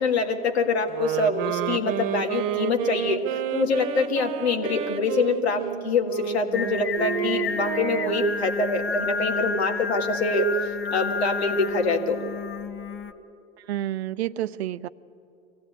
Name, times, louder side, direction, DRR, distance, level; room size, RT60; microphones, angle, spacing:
voice 1, 0.0-3.2 3.5-10.5 10.9-12.2, left 3 dB, 85° left, 4 dB, 1.9 m, -25 dB
sound 1, 0.9-8.4, right 10 dB, 65° right, 1.1 m, -30 dB
Singing, 6.5-13.1, left 5 dB, 40° left, 1.2 m, -30 dB
voice 2, 13.7-14.9, right 13 dB, 85° right, 16 dB, 0.6 m, -29 dB
23.5 x 15.5 x 8.5 m, 2.6 s
hypercardioid pair, 85°, 31 cm